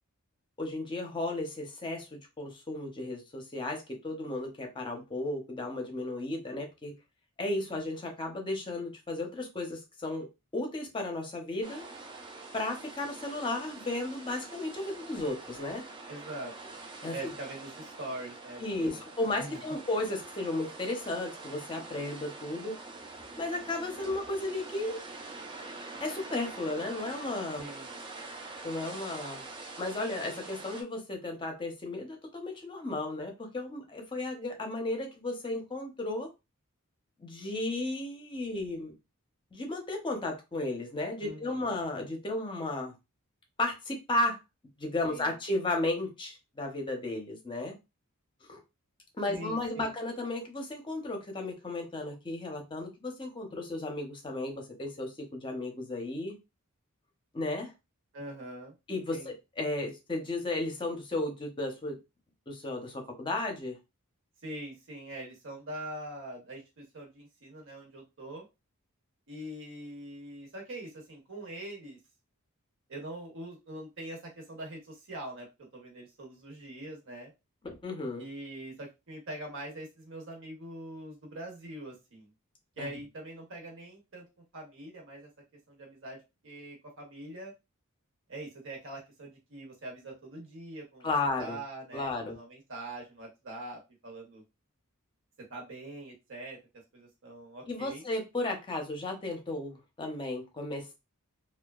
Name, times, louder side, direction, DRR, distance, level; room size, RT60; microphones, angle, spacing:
voice 1, 0.6-6.9 7.4-11.9 12.5-15.8 17.0-17.3 18.6-22.8 23.4-25.0 26.0-27.7 28.6-29.4 29.8-36.3 37.2-38.9 39.5-42.9 43.6-44.4 44.8-47.8 48.5-48.6 49.2-56.4 57.3-57.7 58.9-62.0 62.5-63.8 77.6-78.3 82.8-82.9 91.0-91.6 91.9-92.4 97.7-100.9, left 2 dB, 20° left, 0.6 m, -34 dB
sound 1, 11.6-30.8, right 3 dB, 20° right, 0.4 m, -45 dB
voice 2, 16.1-16.7 17.1-19.0 19.4-19.6 27.6-27.9 41.2-41.7 45.1-45.3 49.3-49.9 58.1-58.7 59.1-59.3 64.4-68.4 69.3-72.0 72.9-77.3 78.1-82.3 82.8-84.3 84.5-85.3 85.7-87.5 88.3-91.1 91.4-94.4 95.5-96.6 96.9-98.0, right 1 dB, 60° right, 0.9 m, -43 dB
2.7 x 2.2 x 2.3 m
head